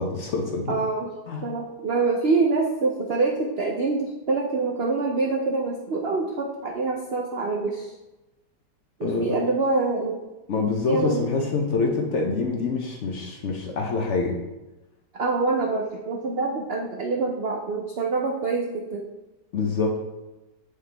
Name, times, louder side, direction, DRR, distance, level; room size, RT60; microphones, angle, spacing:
voice 1, 0.0-0.8 1.3-1.4 9.0-9.4 10.5-14.4 19.5-19.9, left 4 dB, 55° left, 1 dB, 0.9 m, -26 dB
voice 2, 0.7-1.1 1.4-7.9 9.0-10.2 10.9-11.3 15.1-19.0, right 3 dB, 85° right, 1 dB, 0.5 m, -25 dB
7.4 x 4.9 x 3.3 m, 1.0 s
omnidirectional pair, 1.9 m